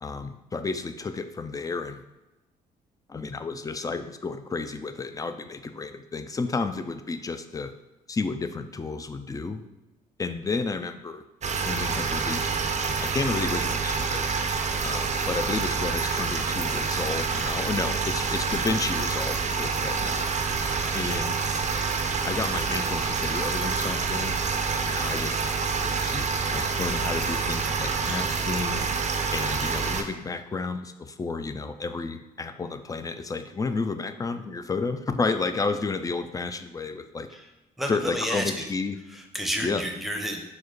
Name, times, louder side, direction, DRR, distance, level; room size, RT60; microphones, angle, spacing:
voice 1, 0.0-2.0 3.1-7.7 8.1-9.6 10.2-11.2 11.6-12.5 12.8-14.2 14.8-20.3 20.9-21.4 22.2-24.4 24.8-28.9 29.3-37.3 37.9-39.0 39.6-39.9, left 4 dB, 20° left, 9 dB, 0.3 m, -31 dB
sound 1, 11.4-30.0, right 5 dB, 35° right, 0.5 m, -27 dB
voice 2, 37.8-38.7 39.1-40.4, equal, ahead, 3 dB, 0.7 m, -31 dB
4.7 x 2.1 x 4.3 m, 1.0 s
hypercardioid pair, 50°, 19 cm